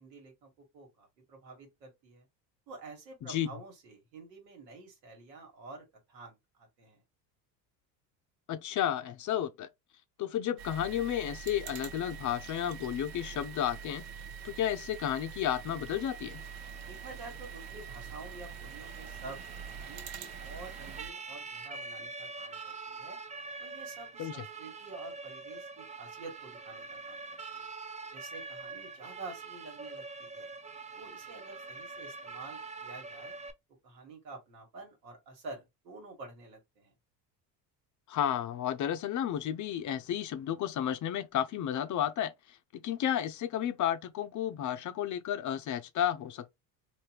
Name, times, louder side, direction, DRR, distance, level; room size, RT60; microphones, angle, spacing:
voice 1, 0.0-2.3 2.7-7.0 16.9-23.2 23.6-27.2 27.5-27.7 28.1-30.5 30.9-33.4 33.8-36.9, right 3 dB, 90° right, 1.7 m, -49 dB
voice 2, 8.5-9.7 10.2-14.0 14.4-16.4 24.2-24.4 38.1-42.6 42.8-46.5, left 10 dB, 40° left, 0.5 m, -32 dB
sound 1, 10.6-21.1, right 7 dB, 70° right, 0.8 m, -45 dB
Siren, 15.8-33.5, right 4 dB, 15° right, 0.4 m, -45 dB
3.4 x 2.7 x 2.9 m
hypercardioid pair, 80°, 49 cm